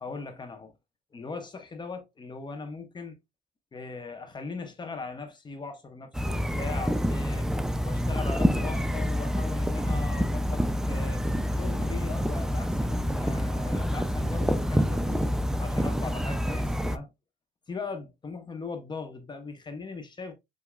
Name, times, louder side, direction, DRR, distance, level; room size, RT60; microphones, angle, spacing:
voice 1, 0.0-0.7 1.1-3.2 3.7-7.5 7.8-15.3 15.6-17.1 17.7-20.3, left 4 dB, 25° left, 1.0 m, -39 dB
sound 1, 6.1-17.0, equal, 5° right, 0.3 m, -27 dB
7.1 x 2.9 x 2.3 m
cardioid pair, 110°, 17 cm